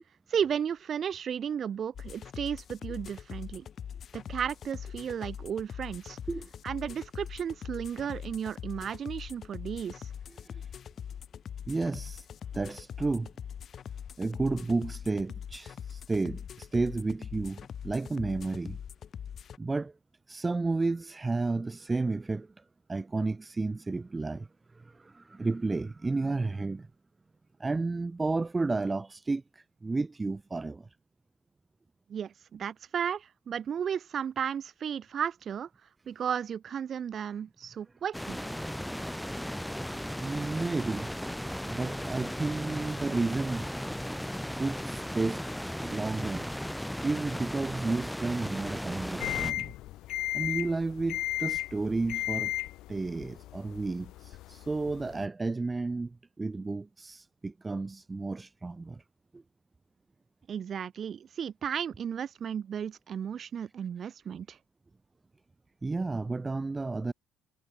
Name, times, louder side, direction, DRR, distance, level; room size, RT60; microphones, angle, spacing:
voice 1, 0.3-3.7 4.1-6.2 6.6-10.1 32.1-35.7 36.1-38.4 60.5-64.6, right 8 dB, 45° right, 1.8 m, -34 dB
sound 1, 1.9-19.6, left 8 dB, 50° left, 2.4 m, -42 dB
voice 2, 10.3-10.7 11.7-12.3 12.5-13.3 14.2-18.8 19.6-19.9 20.3-22.6 22.9-24.5 24.7-26.9 27.6-30.9 40.2-41.1 41.6-43.7 44.6-45.4 45.8-46.7 47.0-49.7 50.3-52.5 52.9-59.0 59.3-59.4 65.8-67.1, right 3 dB, 20° right, 1.7 m, -32 dB
sound 2, 38.1-49.5, equal, ahead, 1.3 m, -36 dB
sound 3, 49.2-55.3, left 16 dB, 80° left, 1.4 m, -35 dB
cardioid pair, 105°, 0 cm